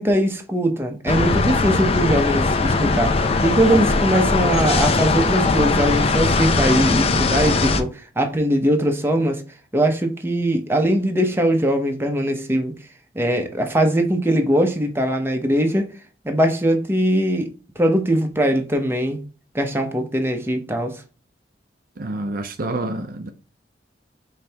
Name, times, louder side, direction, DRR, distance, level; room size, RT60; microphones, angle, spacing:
voice 1, 0.0-9.4 9.7-12.7 13.1-15.9 16.2-17.5 17.8-19.2 19.5-20.9, right 1 dB, 15° right, 0.8 m, -21 dB
sound 1, 1.1-7.8, left 3 dB, 35° left, 0.5 m, -20 dB
voice 2, 22.0-23.3, right 2 dB, 55° right, 0.6 m, -28 dB
5.2 x 3.3 x 2.8 m
head